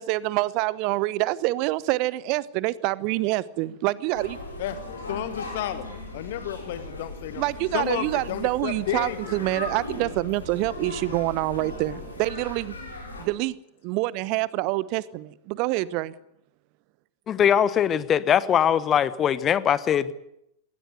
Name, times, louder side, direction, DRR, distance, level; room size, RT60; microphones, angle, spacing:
voice 1, 0.0-4.4 7.4-12.8 13.2-13.6 13.8-16.1, right 18 dB, 45° right, 20 dB, 1.0 m, -26 dB
sound 1, 4.1-13.2, left 2 dB, 75° left, 6.6 m, -38 dB
voice 2, 4.6-7.4 7.7-9.3, left 12 dB, 55° left, 12 dB, 1.4 m, -32 dB
voice 3, 17.3-20.1, left 9 dB, 25° left, 17 dB, 1.2 m, -21 dB
20.0 x 18.5 x 9.6 m, 0.78 s
figure-of-eight pair, 90°, 0 cm